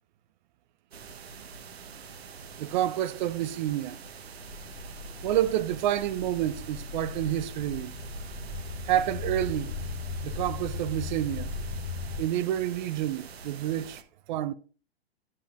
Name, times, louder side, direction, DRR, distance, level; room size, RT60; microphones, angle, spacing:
sound 1, 0.9-14.0, right 5 dB, 70° right, 1.3 m, -45 dB
voice 1, 2.6-4.0 5.2-8.0 8.9-9.9 10.2-11.5 12.2-14.0 14.3-14.5, right 12 dB, 45° right, 0.7 m, -29 dB
sound 2, 4.4-12.2, left 3 dB, 60° left, 1.6 m, -37 dB
11.5 x 7.5 x 2.5 m
figure-of-eight pair, 110°, 32 cm